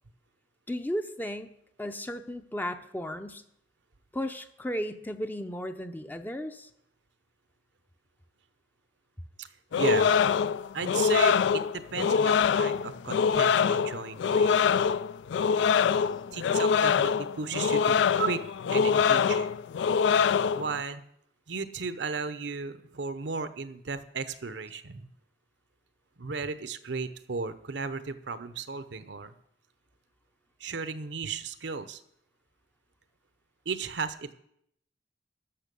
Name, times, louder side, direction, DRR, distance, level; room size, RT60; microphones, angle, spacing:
voice 1, 0.7-1.5 1.8-3.4 4.1-6.7, equal, 10° left, 8 dB, 0.5 m, -34 dB
voice 2, 9.4-10.1 10.7-14.8 16.3-18.4 18.7-19.6 20.5-21.0 21.5-25.1 26.2-29.3 30.6-32.0 33.6-34.3, right 5 dB, 70° right, 11 dB, 0.7 m, -35 dB
sound 1, 9.7-20.8, left 6 dB, 75° left, 0.3 m, -24 dB
12.5 x 5.8 x 6.9 m, 0.72 s
head